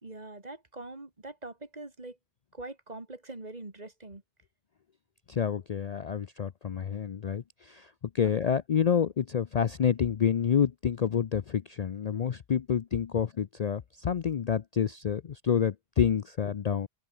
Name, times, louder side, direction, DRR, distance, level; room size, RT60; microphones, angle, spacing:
voice 1, 0.0-2.2 2.5-4.2 13.1-13.2, right 2 dB, 40° right, 2.7 m, -43 dB
voice 2, 5.3-16.9, left 7 dB, 45° left, 0.6 m, -28 dB
open air
omnidirectional pair, 1.1 m